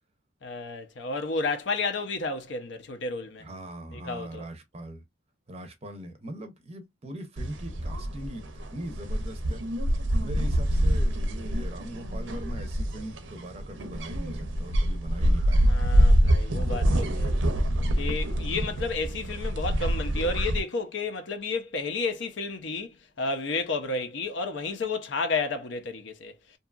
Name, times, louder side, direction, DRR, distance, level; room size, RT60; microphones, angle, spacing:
voice 1, 0.4-3.4 3.9-4.5 15.7-17.3 18.0-26.3, left 3 dB, 70° left, 0.6 m, -31 dB
voice 2, 3.4-5.0 5.5-9.6 10.2-15.8, right 1 dB, 35° right, 0.5 m, -41 dB
sound 1, 7.4-20.6, equal, 80° right, 0.6 m, -25 dB
2.7 x 2.3 x 2.3 m
head